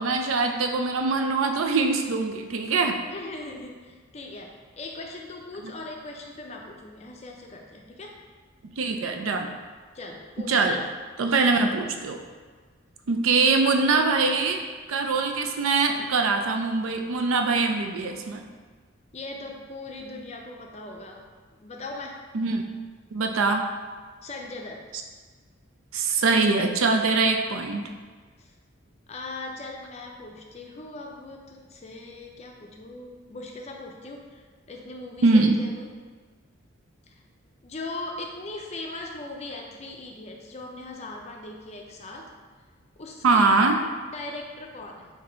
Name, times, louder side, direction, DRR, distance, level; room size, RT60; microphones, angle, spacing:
voice 1, 0.0-3.0 5.6-5.7 8.6-9.5 10.4-10.8 11.2-12.2 13.1-14.6 14.9-18.5 22.3-22.7 23.1-23.7 25.9-27.9 35.2-35.6 43.2-43.8, right 3 dB, 90° right, 4 dB, 0.5 m, -23 dB
voice 2, 3.1-8.2 9.9-10.7 19.1-21.3 21.6-22.2 24.2-24.9 28.4-28.5 29.1-34.4 34.7-35.9 37.1-37.2 37.6-42.3 43.0-43.8 44.0-45.1, left 2 dB, 35° left, 1 dB, 0.5 m, -39 dB
4.2 x 2.7 x 4.4 m, 1.5 s
head